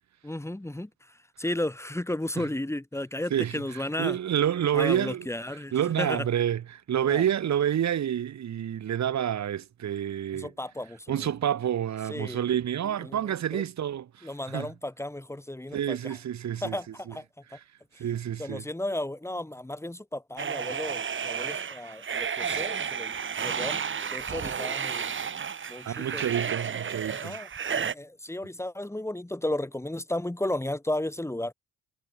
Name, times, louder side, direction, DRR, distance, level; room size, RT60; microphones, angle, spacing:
voice 1, 0.2-0.9 1.4-4.2 4.7-6.3 7.1-7.2 10.3-11.3 12.1-12.4 12.8-13.6 14.2-16.2 16.6-17.2 18.4-23.8 24.1-25.1 25.7-26.2 27.1-31.5, left 1 dB, 10° left, 5.5 m, -34 dB
voice 2, 3.3-5.3 5.7-10.5 11.1-14.7 15.7-16.8 17.1-17.2 18.0-18.6 25.8-27.4, right 10 dB, 65° right, 5.8 m, -28 dB
sound 1, 20.4-27.9, right 7 dB, 40° right, 2.0 m, -32 dB
cardioid pair, 90°, 30 cm